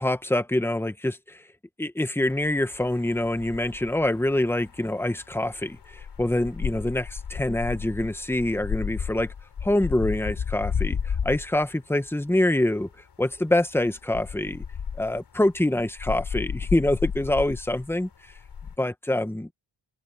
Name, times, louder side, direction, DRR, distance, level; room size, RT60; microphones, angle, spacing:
voice 1, 0.0-1.5 1.8-9.3 9.6-12.9 13.2-14.6 15.0-18.3 18.8-19.5, left 1 dB, 5° left, 1.2 m, -25 dB
sound 1, 2.3-11.7 12.0-12.1 12.6-12.9 13.2-13.4 13.8-18.8, left 7 dB, 60° left, 4.3 m, -33 dB
cardioid pair, 95°, 45 cm